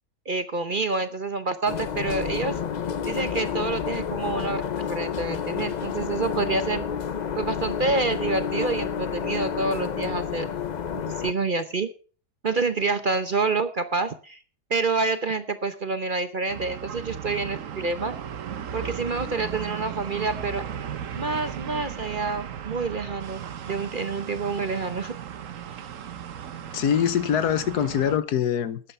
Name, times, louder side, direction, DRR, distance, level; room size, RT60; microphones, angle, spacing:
voice 1, 0.3-2.6 3.1-4.6 4.9-6.8 7.4-10.5 11.1-11.9 12.4-14.4 14.7-18.1 18.7-20.7 21.2-25.1, right 3 dB, 40° right, 0.8 m, -27 dB
sound 1, 1.7-11.3, left 7 dB, 65° left, 0.4 m, -30 dB
sound 2, 16.5-28.2, right 8 dB, 60° right, 1.2 m, -36 dB
voice 2, 26.7-28.8, left 9 dB, 85° left, 1.5 m, -23 dB
13.0 x 9.2 x 5.4 m
omnidirectional pair, 1.6 m